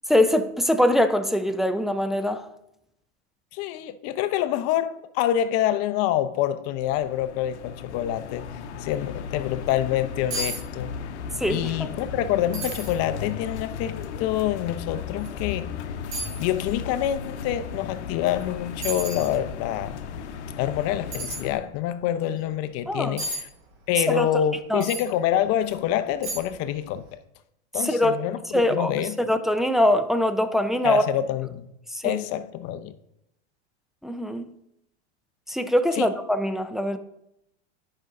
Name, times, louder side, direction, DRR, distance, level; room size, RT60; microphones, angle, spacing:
voice 1, 0.1-2.4 11.4-11.7 22.9-23.2 24.1-24.3 24.7-24.8 27.8-28.2 28.5-28.9 29.3-31.0 31.9-32.2 34.0-34.5 35.5-37.0, left 1 dB, ahead, 0.3 m, -22 dB
voice 2, 3.5-8.5 8.8-11.0 11.5-15.7 16.4-20.0 20.6-23.5 23.9-27.2 27.7-29.2 30.8-31.7 32.0-32.9 36.0-36.1, left 11 dB, 45° left, 0.6 m, -26 dB
sound 1, 6.8-21.6, left 6 dB, 80° left, 0.8 m, -36 dB
sound 2, 10.3-10.6 10.9-11.4 11.8-11.9 12.5-13.0 13.6-13.7 15.2-15.3 16.1-16.4 18.3-18.4 18.8-19.3 21.1-21.4 23.2-23.4 24.8-25.1 25.6-25.7 26.2-26.6 26.9-27.0, right 2 dB, 75° right, 3.2 m, -32 dB
10.0 x 5.3 x 3.7 m
hypercardioid pair, 115°, 33 cm